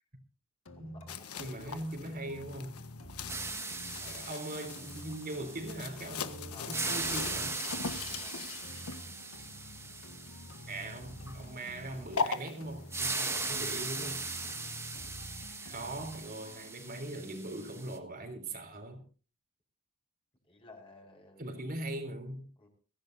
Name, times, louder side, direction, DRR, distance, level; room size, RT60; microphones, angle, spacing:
sound 1, 0.7-18.6, left 1 dB, 70° left, 1.8 m, -50 dB
voice 1, 0.8-2.0 3.3-3.8 6.5-7.2 7.7-8.6 14.4-14.7 15.8-16.0 20.4-21.4 22.6-22.7, left 2 dB, 25° left, 5.0 m, -56 dB
sound 2, 1.1-13.4, left 5 dB, 85° left, 1.3 m, -41 dB
voice 2, 1.4-2.7 4.0-7.6 10.7-14.2 15.6-19.0 21.4-22.5, right 1 dB, 45° right, 3.7 m, -41 dB
sound 3, 3.3-6.2 6.6-11.4 12.9-18.0, right 3 dB, 10° right, 1.6 m, -39 dB
23.0 x 15.5 x 2.7 m
head